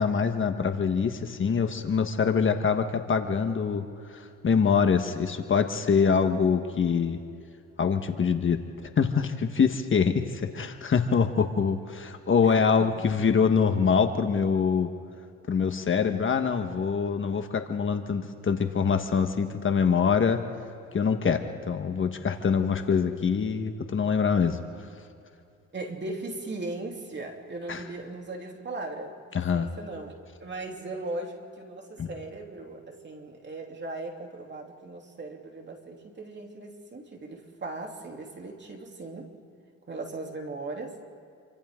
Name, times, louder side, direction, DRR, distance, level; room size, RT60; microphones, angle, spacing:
voice 1, 0.0-3.9 4.1-7.2 7.8-14.9 15.5-20.4 20.9-24.6 27.7-27.8 29.3-29.7 32.0-32.1, left 6 dB, 40° left, 6 dB, 1.4 m, -24 dB
voice 2, 12.4-12.9 25.7-29.1 29.5-30.1 30.4-39.3 39.9-40.9, right 2 dB, 35° right, 1 dB, 3.2 m, -38 dB
28.0 x 25.0 x 3.8 m, 2.6 s
cardioid pair, 90°, 30 cm